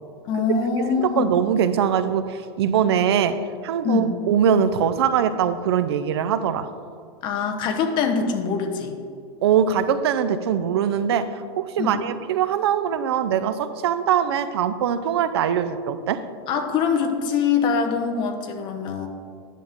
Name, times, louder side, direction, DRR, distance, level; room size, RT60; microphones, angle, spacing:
voice 1, 0.3-1.4 3.8-4.2 7.2-8.9 11.8-12.1 16.5-19.1, left 5 dB, 35° left, 4 dB, 1.0 m, -23 dB
voice 2, 0.8-6.7 9.4-16.2, right 8 dB, 80° right, 12 dB, 0.6 m, -22 dB
10.0 x 7.5 x 3.6 m, 2.3 s
supercardioid pair, 145°, 13 cm